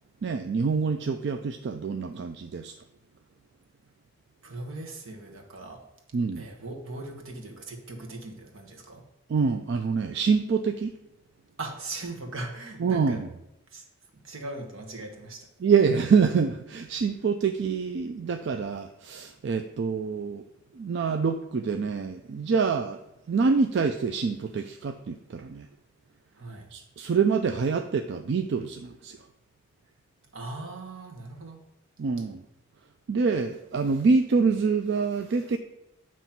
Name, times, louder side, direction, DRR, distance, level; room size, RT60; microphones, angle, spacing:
voice 1, 0.2-2.7 6.1-6.5 9.3-10.9 12.8-13.3 15.6-20.4 20.7-23.0 23.3-25.7 26.7-29.2 32.0-32.4 33.1-35.6, right 5 dB, 55° right, 7 dB, 0.3 m, -26 dB
voice 2, 4.4-5.8 6.4-9.0 11.6-13.2 13.7-13.8 14.1-15.5 26.4-26.7 30.3-31.6, right 2 dB, 80° right, 2 dB, 1.3 m, -39 dB
9.0 x 3.1 x 5.7 m, 0.87 s
head